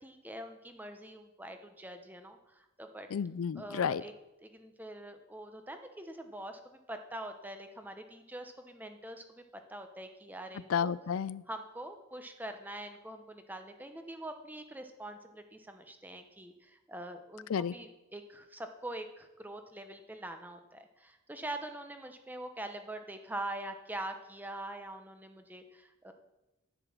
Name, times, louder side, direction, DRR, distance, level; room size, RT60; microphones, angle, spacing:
voice 1, 0.0-3.1 3.6-4.1 4.4-9.4 9.7-10.9 11.5-26.1, right 1 dB, 10° right, 6 dB, 0.9 m, -44 dB
voice 2, 3.1-4.0 10.7-11.4 17.5-17.7, left 7 dB, 85° left, 18 dB, 0.4 m, -31 dB
11.0 x 9.2 x 6.0 m, 0.98 s
head